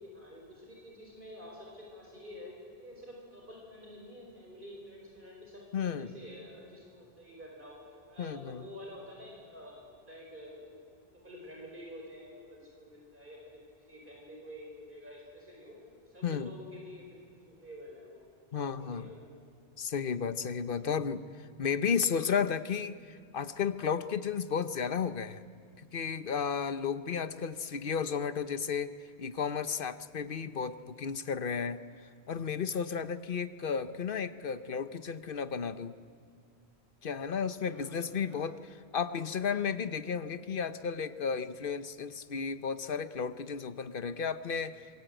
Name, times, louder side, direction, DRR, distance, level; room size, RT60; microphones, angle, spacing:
voice 1, 0.0-10.8 11.1-15.8 16.1-19.3 20.8-21.0 37.7-38.4, left 1 dB, 55° right, -2 dB, 5.2 m, -49 dB
voice 2, 5.7-6.1 8.2-8.6 16.2-16.5 18.5-19.1 19.8-21.2 21.6-25.4 25.8-31.8 32.3-35.9 37.0-38.6 38.9-45.0, left 6 dB, 60° left, 12 dB, 1.1 m, -33 dB
26.5 x 22.5 x 9.1 m, 2.1 s
omnidirectional pair, 1.1 m